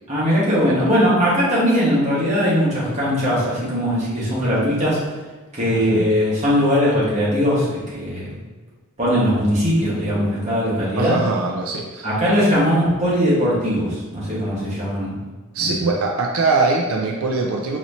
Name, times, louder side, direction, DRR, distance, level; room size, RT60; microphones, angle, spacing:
voice 1, 0.1-5.1 5.5-8.3 9.0-11.2 12.0-15.2 15.6-15.7, equal, 35° right, -8 dB, 1.3 m, -20 dB
voice 2, 5.7-6.1 11.0-12.1 15.5-17.8, right 3 dB, 85° right, 1 dB, 0.4 m, -22 dB
4.2 x 3.0 x 2.7 m, 1.2 s
head